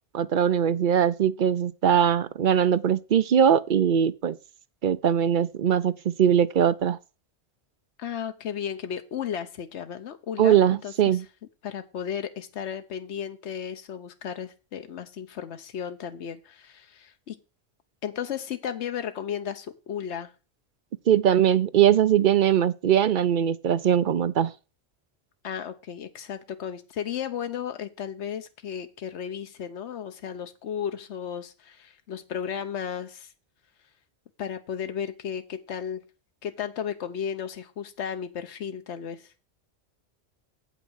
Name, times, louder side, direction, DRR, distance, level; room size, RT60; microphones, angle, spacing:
voice 1, 0.1-4.4 4.8-7.0 10.4-11.2 21.1-24.5, right 9 dB, 55° right, 0.7 m, -21 dB
voice 2, 8.0-11.2 11.6-17.4 18.0-20.3 25.4-33.3 34.4-36.0 36.4-39.3, left 8 dB, 85° left, 1.1 m, -34 dB
8.2 x 5.9 x 6.3 m
omnidirectional pair, 1.1 m